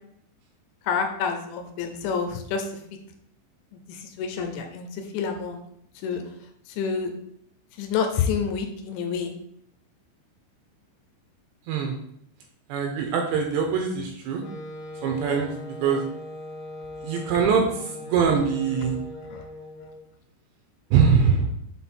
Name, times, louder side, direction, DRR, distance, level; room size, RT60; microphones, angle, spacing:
voice 1, 0.9-2.6 3.9-4.9 5.1-5.6 6.0-6.2 6.8-7.1 7.8-9.3 19.3-19.4, left 6 dB, 80° left, 5 dB, 2.9 m, -28 dB
voice 2, 12.7-14.4 15.0-15.5 15.8-16.0 17.0-17.6 18.1-19.0 20.9-21.5, right 6 dB, 80° right, 2 dB, 2.6 m, -22 dB
Wind instrument woodwind instrument, 14.4-20.1, left 2 dB, 55° left, 2.2 m, -39 dB
7.6 x 3.9 x 4.2 m, 0.73 s
omnidirectional pair, 5.5 m